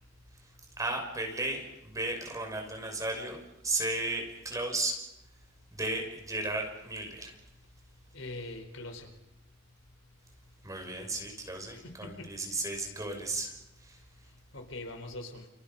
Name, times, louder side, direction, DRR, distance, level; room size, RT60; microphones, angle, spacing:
voice 1, 0.8-5.0 5.7-7.3 10.6-13.5 13.8-14.0, right 2 dB, 15° right, 2 dB, 5.8 m, -34 dB
voice 2, 8.1-9.1 11.7-12.7 14.5-15.5, left 2 dB, 85° left, 5 dB, 4.4 m, -43 dB
30.0 x 28.5 x 5.5 m, 0.87 s
head